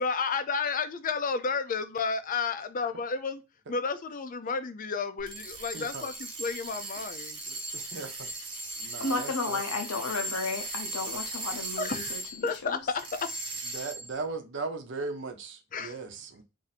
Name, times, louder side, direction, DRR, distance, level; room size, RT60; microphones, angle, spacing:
voice 1, 0.0-3.4 3.7-7.4 11.8-13.3 15.7-16.0, left 5 dB, 40° left, 0.5 m, -32 dB
sound 1, 5.2-12.6 13.0-14.2, right 2 dB, 25° right, 0.9 m, -38 dB
voice 2, 5.7-6.1 7.5-8.3 8.8-9.6 13.7-16.4, right 3 dB, 55° right, 0.8 m, -38 dB
voice 3, 9.0-12.2, left 3 dB, 90° left, 0.7 m, -32 dB
2.6 x 2.6 x 4.1 m
head